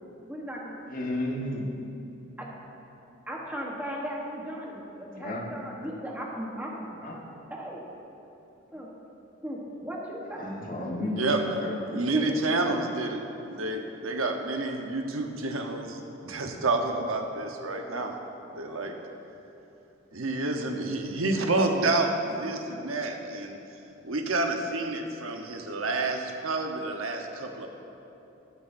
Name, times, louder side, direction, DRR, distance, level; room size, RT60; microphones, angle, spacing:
voice 1, 0.3-0.7 2.4-2.5 3.3-6.7 7.0-7.1 7.5-7.8 8.7-8.9 9.4-10.5 10.8-11.0 11.9-12.3, equal, 10° right, -3 dB, 1.1 m, -37 dB
voice 2, 0.9-1.6 5.0-5.5 7.0-7.2 10.4-11.8, left 1 dB, 40° left, -1 dB, 1.4 m, -33 dB
voice 3, 11.9-18.2 18.5-18.9 20.1-23.6 24.0-27.7, right 2 dB, 85° right, 3 dB, 1.0 m, -29 dB
18.5 x 8.4 x 2.6 m, 3.0 s
head